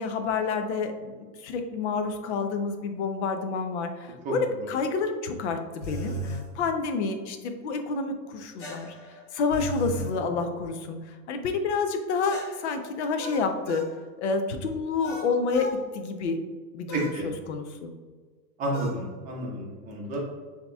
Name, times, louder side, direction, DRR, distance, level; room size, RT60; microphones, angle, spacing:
voice 1, 0.0-8.9 9.3-13.8 14.2-15.7 15.9-16.4 16.7-17.9, left 4 dB, 45° left, 6 dB, 0.6 m, -29 dB
sound 1, 5.8-6.5 8.6-10.2 12.3-13.9 15.0-15.8 16.9-17.2 18.7-19.0, right 1 dB, 85° left, 1.4 m, -36 dB
voice 2, 16.9-17.3 18.6-20.2, right 1 dB, 15° right, -3 dB, 0.8 m, -30 dB
7.3 x 2.9 x 2.3 m, 1.5 s
hypercardioid pair, 145°, 49 cm